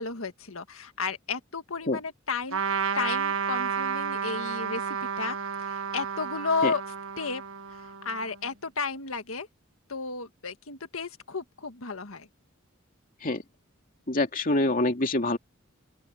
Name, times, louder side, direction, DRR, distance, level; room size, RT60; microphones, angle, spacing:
voice 1, 0.0-2.6 2.9-6.8 7.2-7.4 7.8-9.5 9.9-12.3, left 4 dB, 85° left, 1.7 m, -33 dB
Trumpet, 2.5-8.4, right 6 dB, 75° right, 1.7 m, -31 dB
voice 2, 14.1-15.4, left 2 dB, 45° left, 2.6 m, -25 dB
open air
head